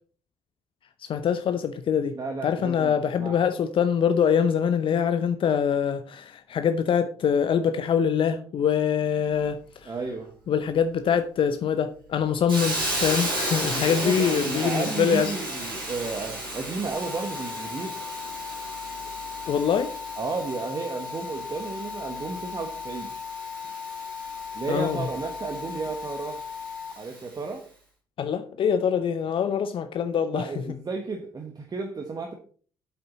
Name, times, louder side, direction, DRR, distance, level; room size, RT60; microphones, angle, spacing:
voice 1, 1.0-2.2 2.4-9.9 10.5-15.4 19.5-19.9 24.7-25.1 28.2-30.6, left 7 dB, 50° left, 0.7 m, -24 dB
voice 2, 2.1-3.4 9.9-10.3 13.6-18.0 20.2-23.1 24.5-26.4 27.0-27.7 30.3-32.3, right 4 dB, 35° right, 1.4 m, -33 dB
Hiss, 12.5-27.3, right 1 dB, 90° right, 3.0 m, -34 dB
sound 1, 16.9-26.9, left 5 dB, ahead, 3.4 m, -37 dB
8.3 x 7.9 x 4.1 m
figure-of-eight pair, 45°, 11 cm